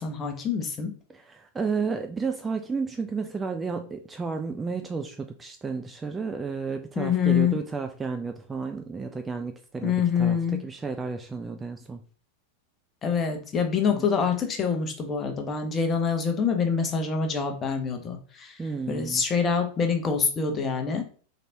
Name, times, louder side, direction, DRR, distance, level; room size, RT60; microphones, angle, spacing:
voice 1, 0.0-0.9 7.0-7.6 9.8-10.6 13.0-18.6 18.9-21.0, left 6 dB, 25° left, 5 dB, 0.8 m, -26 dB
voice 2, 1.1-12.0 14.0-14.1 18.6-19.2, right 4 dB, 15° right, 6 dB, 0.3 m, -32 dB
3.9 x 3.3 x 2.7 m, 0.41 s
figure-of-eight pair, 90°, 0 cm